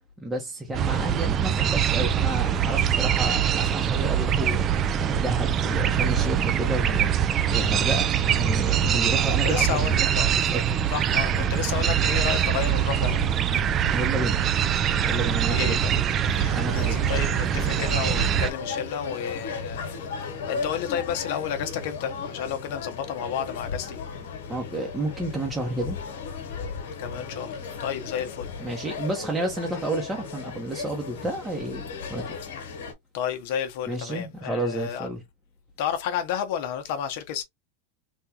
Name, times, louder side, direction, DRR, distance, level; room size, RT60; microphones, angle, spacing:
voice 1, 0.2-8.1 8.4-10.6 13.9-14.4 15.0-15.8 16.5-17.0 24.5-26.0 28.6-31.8 32.1-32.4 33.9-35.2, right 1 dB, 10° right, 0.8 m, -31 dB
sound 1, 0.7-18.5, right 9 dB, 30° right, 0.4 m, -23 dB
voice 2, 8.9-10.3 10.9-13.2 15.5-16.1 16.7-24.0 27.0-28.5 33.1-35.1 35.8-37.4, left 9 dB, 60° left, 0.8 m, -31 dB
sound 2, 16.2-32.9, left 5 dB, 80° left, 1.1 m, -36 dB
3.5 x 2.3 x 2.8 m
supercardioid pair, 140°, 0 cm